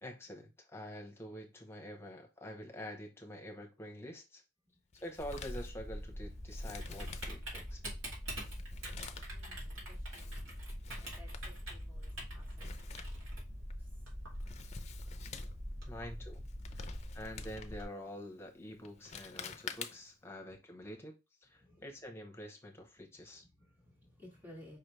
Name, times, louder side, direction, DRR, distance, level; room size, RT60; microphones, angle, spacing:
voice 1, 0.0-4.4 4.9-8.0 15.9-16.4 16.7-21.2 21.4-23.4, equal, 10° left, 0.8 m, -47 dB
Male speech man speaking, 4.9-20.2, left 6 dB, 35° left, 0.4 m, -51 dB
Typing, 5.2-17.8, equal, 75° right, 2.2 m, -43 dB
voice 2, 9.3-10.5 11.0-13.3 13.7-14.0 15.2-15.4 16.7-17.2 21.5-21.8 23.2-24.8, left 1 dB, 10° right, 1.8 m, -59 dB
4.9 x 3.2 x 3.1 m
head